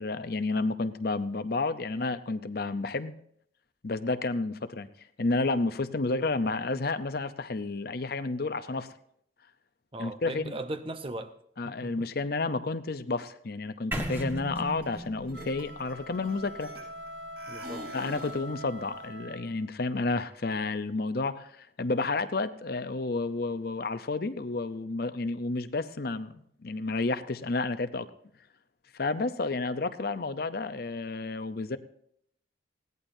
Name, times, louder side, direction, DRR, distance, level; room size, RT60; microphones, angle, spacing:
voice 1, 0.0-3.1 3.8-4.9 5.2-8.9 10.0-10.6 11.6-16.7 17.9-28.1 28.9-31.8, left 3 dB, 55° left, 12 dB, 0.6 m, -31 dB
voice 2, 9.9-11.3 11.6-12.1 17.5-17.9, right 2 dB, 30° right, 9 dB, 0.8 m, -38 dB
sound 1, 13.9-17.9, equal, 10° right, 1.4 m, -38 dB
sound 2, 14.8-15.0 15.3-17.1 17.4-18.5, right 1 dB, 55° right, 7.6 m, -44 dB
sound 3, 15.2-19.8, equal, 75° right, 1.2 m, -44 dB
20.0 x 16.5 x 2.7 m, 0.70 s
head